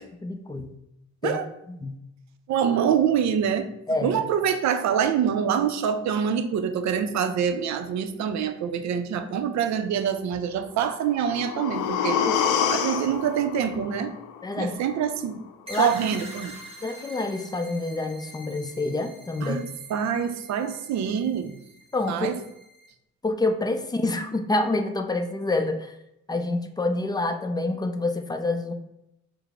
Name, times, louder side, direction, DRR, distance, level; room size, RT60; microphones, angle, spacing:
voice 1, 0.2-0.7 1.2-1.4 1.7-2.0 3.9-4.1 12.2-12.3 14.4-14.8 15.7-15.9 16.8-19.7 21.9-22.3 23.2-25.9 26.3-28.7, left 2 dB, 15° left, 6 dB, 0.4 m, -27 dB
voice 2, 2.5-3.7 4.0-12.2 12.7-14.2 14.6-15.4 15.8-16.6 19.4-19.6 19.9-21.5 22.1-22.4, right 8 dB, 65° right, 9 dB, 0.5 m, -25 dB
sound 1, 11.0-15.0 15.3-15.4, left 7 dB, 80° left, 0.5 m, -28 dB
sound 2, 15.7-22.9, right 1 dB, 20° right, 0.9 m, -45 dB
4.6 x 2.0 x 3.4 m, 0.83 s
cardioid pair, 90°, 30 cm